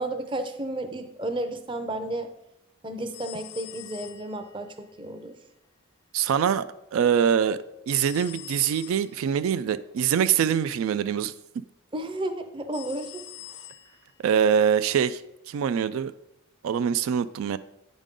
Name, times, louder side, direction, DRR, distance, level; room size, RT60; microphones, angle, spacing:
voice 1, 0.0-2.3 2.8-4.7 5.0-5.3 11.9-13.1, right 1 dB, 25° right, 8 dB, 0.5 m, -32 dB
sound 1, 3.1-4.7 7.9-9.2 12.7-14.1, left 13 dB, 50° left, 0.4 m, -44 dB
voice 2, 6.1-6.6 6.9-7.6 7.9-11.3 14.2-15.2 15.5-16.1 16.6-17.6, right 8 dB, 80° right, 14 dB, 0.3 m, -23 dB
9.1 x 5.2 x 3.7 m, 0.87 s
head